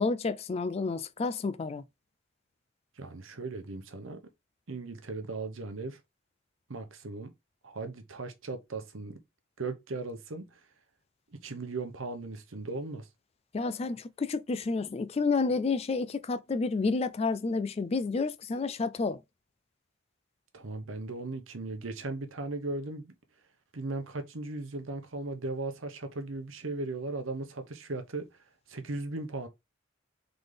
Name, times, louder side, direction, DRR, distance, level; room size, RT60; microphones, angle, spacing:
voice 1, 0.0-1.8 13.5-19.2, left 4 dB, 30° left, 0.3 m, -30 dB
voice 2, 3.0-4.2 4.7-6.0 6.7-7.3 7.6-9.2 9.6-10.6 11.3-13.1 20.5-23.1 23.7-28.3 28.7-29.5, right 3 dB, 85° right, 0.9 m, -37 dB
3.9 x 3.9 x 3.3 m
head